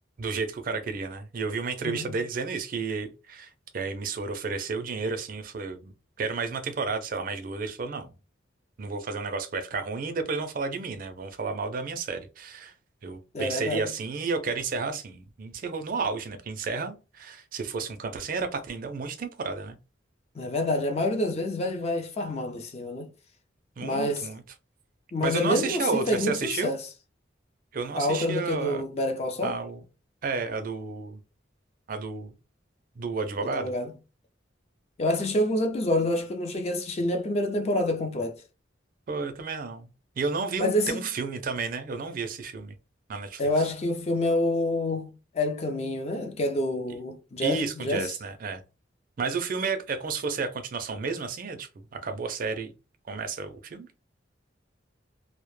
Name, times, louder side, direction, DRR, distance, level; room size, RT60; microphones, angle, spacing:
voice 1, 0.2-8.1 8.8-12.7 13.0-19.8 23.8-24.4 25.2-26.8 27.7-28.8 29.4-29.8 30.2-31.2 31.9-32.3 33.0-33.7 39.1-39.9 40.2-42.8 43.1-43.6 47.4-48.6 49.2-52.7 53.1-53.9, right 4 dB, 45° right, 0.4 m, -32 dB
voice 2, 1.8-2.1 13.3-13.9 20.4-23.1 23.8-24.3 25.1-26.8 27.9-29.6 33.4-33.9 35.0-38.4 40.6-41.1 43.4-48.1, left 1 dB, 35° left, 0.4 m, -27 dB
2.1 x 2.0 x 3.0 m
head